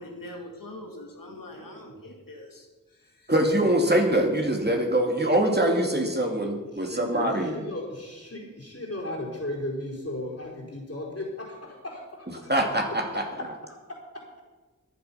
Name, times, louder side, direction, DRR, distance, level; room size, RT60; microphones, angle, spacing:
voice 1, 0.0-3.3, left 1 dB, 85° left, 1 dB, 2.2 m, -43 dB
voice 2, 1.5-2.1 6.3-12.5 13.1-14.4, left 1 dB, 45° left, -2 dB, 4.6 m, -37 dB
voice 3, 3.3-7.5 12.5-13.2, right 1 dB, 30° right, 2 dB, 2.5 m, -23 dB
14.5 x 10.5 x 5.8 m, 1.3 s
wide cardioid pair, 45°, 33 cm